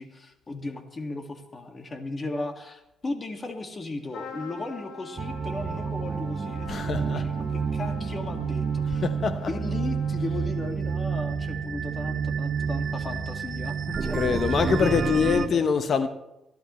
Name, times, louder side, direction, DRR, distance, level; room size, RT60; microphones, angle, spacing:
voice 1, 0.0-9.0 9.5-14.4 14.8-15.7, left 2 dB, 30° left, 2.0 m, -35 dB
Trumpet, 4.1-11.0, left 4 dB, 75° left, 3.0 m, -44 dB
sound 1, 5.2-15.5, right 6 dB, 40° right, 1.0 m, -29 dB
voice 2, 6.7-7.3 9.0-9.6 14.1-16.1, left 6 dB, 50° left, 0.9 m, -24 dB
25.0 x 12.0 x 3.2 m
cardioid pair, 90°, 0 cm